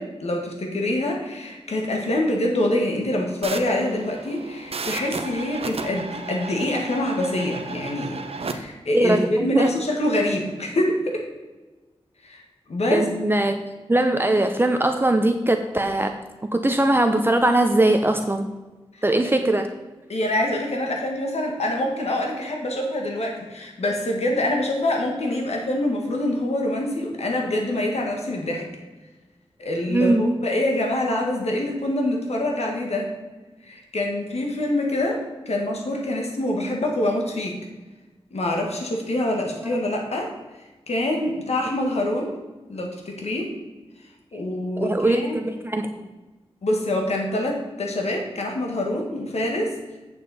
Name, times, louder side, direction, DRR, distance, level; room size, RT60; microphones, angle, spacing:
voice 1, 0.0-11.2 12.2-12.4 12.7-13.1 18.9-19.0 20.1-28.6 29.6-33.1 33.6-35.2 35.4-37.6 38.3-40.3 40.9-42.3 42.7-43.5 44.3-45.4 46.6-49.7, left 1 dB, 75° left, 1 dB, 1.7 m, -25 dB
sound 1, 3.4-8.5, right 4 dB, 65° right, 0.8 m, -34 dB
voice 2, 8.9-9.7 12.9-13.6 13.9-16.1 16.5-18.5 19.0-19.7 29.9-30.2 39.6-39.8 44.8-46.1, right 1 dB, 20° right, 5 dB, 0.7 m, -21 dB
8.5 x 7.4 x 4.2 m, 1.2 s
cardioid pair, 60°, 11 cm